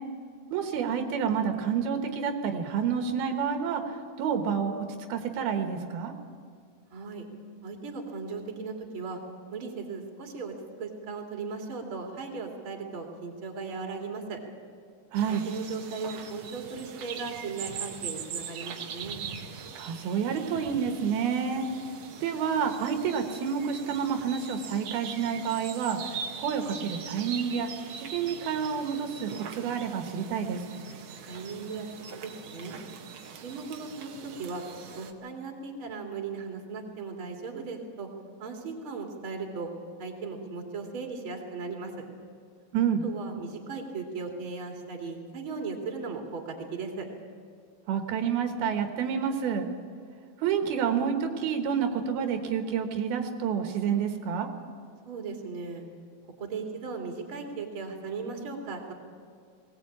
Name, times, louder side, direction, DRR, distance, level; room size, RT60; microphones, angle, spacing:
voice 1, 0.5-6.1 15.1-15.4 19.8-21.7 22.2-27.7 28.0-30.6 42.7-43.0 47.9-49.7 50.4-54.5, right 7 dB, 80° right, 5 dB, 3.2 m, -29 dB
voice 2, 6.9-7.3 7.6-9.2 9.5-10.5 10.8-14.4 15.3-19.2 31.2-31.9 32.1-32.8 33.3-34.6 35.0-38.1 38.4-39.7 40.0-41.9 43.0-47.1 55.0-55.8 56.4-58.9, right 4 dB, 35° right, 2 dB, 3.1 m, -37 dB
sound 1, 15.1-35.1, right 7 dB, 60° right, 1.8 m, -42 dB
20.5 x 18.0 x 8.6 m, 2.2 s
omnidirectional pair, 4.3 m